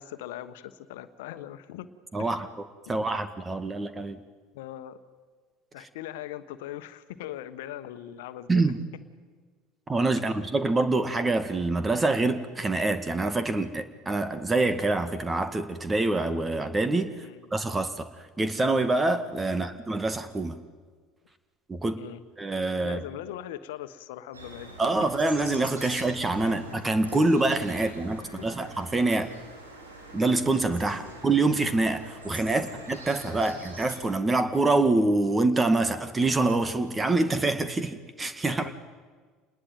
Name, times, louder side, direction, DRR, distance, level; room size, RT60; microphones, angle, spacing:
voice 1, 0.0-1.9 2.2-2.4 2.8-3.1 4.5-5.0 5.7-8.6 10.2-10.3 17.2-17.5 19.5-19.7 22.0-22.2 22.8-24.7 25.9-26.0 26.4-26.6 27.8-27.9 28.2-28.5 30.9-31.2 32.5-32.7 33.4-33.6 38.5-38.7, left 12 dB, 70° left, 12 dB, 1.4 m, -41 dB
voice 2, 2.1-2.5 2.9-4.2 8.5-8.8 9.9-17.1 17.5-18.1 18.4-20.6 21.7-22.0 22.4-23.0 24.8-29.3 30.1-38.7, right 2 dB, 20° right, 11 dB, 2.0 m, -25 dB
sound 1, 24.3-34.0, right 2 dB, 90° right, 3.9 m, -44 dB
28.0 x 20.0 x 9.3 m, 1.5 s
figure-of-eight pair, 65°, 0 cm